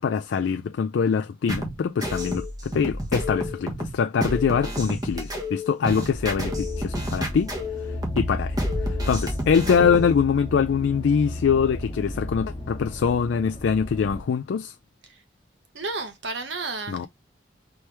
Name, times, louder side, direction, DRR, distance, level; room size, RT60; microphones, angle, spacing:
voice 1, 0.0-7.5 8.2-14.7 16.9-17.1, left 6 dB, 80° left, 0.3 m, -24 dB
sound 1, 1.5-10.2, left 1 dB, 20° right, 1.2 m, -30 dB
sound 2, 6.1-14.2, left 1 dB, 25° left, 1.0 m, -33 dB
voice 2, 15.7-17.1, right 3 dB, 80° right, 1.1 m, -31 dB
4.4 x 3.2 x 3.3 m
head